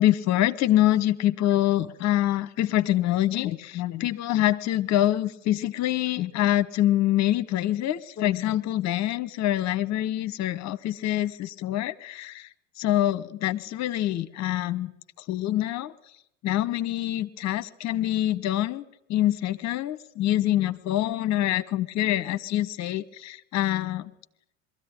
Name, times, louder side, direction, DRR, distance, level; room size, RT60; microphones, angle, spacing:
voice 1, 0.0-12.5 12.8-14.9 15.3-15.9 16.4-18.8 19.1-24.1, left 13 dB, 45° left, 16 dB, 1.1 m, -25 dB
22.5 x 13.5 x 9.8 m, 0.78 s
hypercardioid pair, 70°, 37 cm